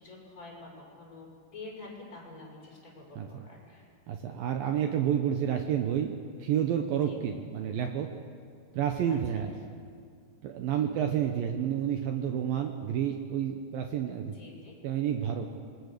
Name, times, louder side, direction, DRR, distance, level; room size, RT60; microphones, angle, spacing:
voice 1, 0.0-3.8 7.0-7.2 9.1-9.4 10.7-11.1 14.3-14.8, left 3 dB, 15° left, -3 dB, 6.0 m, -48 dB
voice 2, 4.1-8.1 8.7-9.5 10.4-14.3 14.8-15.5, right 9 dB, 85° right, 4 dB, 2.1 m, -30 dB
27.5 x 21.0 x 6.7 m, 2.3 s
omnidirectional pair, 5.5 m